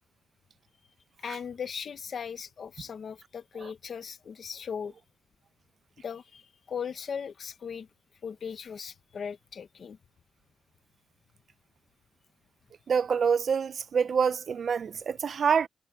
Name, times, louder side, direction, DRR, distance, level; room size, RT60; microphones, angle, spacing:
voice 1, 1.2-4.9 6.0-7.9 8.2-10.0, left 7 dB, 55° left, 1.0 m, -38 dB
voice 2, 12.9-15.7, right 6 dB, 55° right, 0.5 m, -26 dB
wide cardioid pair, 175°, 0 cm